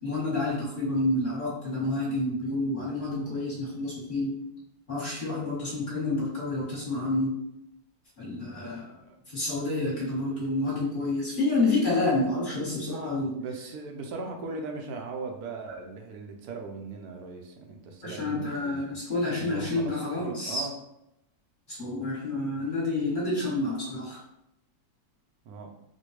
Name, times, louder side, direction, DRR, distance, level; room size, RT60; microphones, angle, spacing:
voice 1, 0.0-4.3 4.9-7.3 8.2-8.9 9.3-13.4 18.0-20.7 21.7-24.2, left 2 dB, 35° left, -7 dB, 1.4 m, -29 dB
voice 2, 8.6-9.2 13.4-19.0 19.4-20.7 25.5-25.7, right 3 dB, 75° right, 2 dB, 1.1 m, -39 dB
4.2 x 2.2 x 3.1 m, 0.82 s
omnidirectional pair, 1.7 m